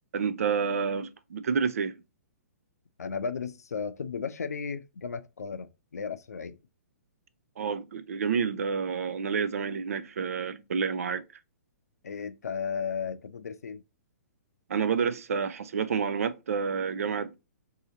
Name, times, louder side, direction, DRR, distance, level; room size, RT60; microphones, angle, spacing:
voice 1, 0.1-2.0 7.6-11.2 14.7-17.4, right 6 dB, 65° right, 0.4 m, -29 dB
voice 2, 3.0-6.6 12.0-13.8, left 6 dB, 75° left, 0.5 m, -35 dB
2.7 x 2.7 x 3.7 m
figure-of-eight pair, 120°, 9 cm